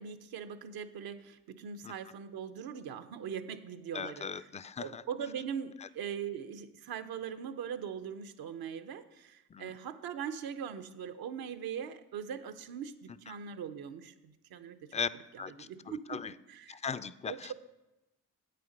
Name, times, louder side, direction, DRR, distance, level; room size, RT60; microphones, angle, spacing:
voice 1, 0.0-4.5 4.8-14.8 15.3-16.8 17.2-17.5, right 7 dB, 75° right, 10 dB, 0.8 m, -41 dB
voice 2, 3.9-5.0 9.5-9.7 13.3-13.4 14.9-15.1 15.4-16.3 16.7-17.5, left 6 dB, 20° left, 16 dB, 0.4 m, -38 dB
8.6 x 6.8 x 5.2 m, 0.97 s
supercardioid pair, 50°, 37 cm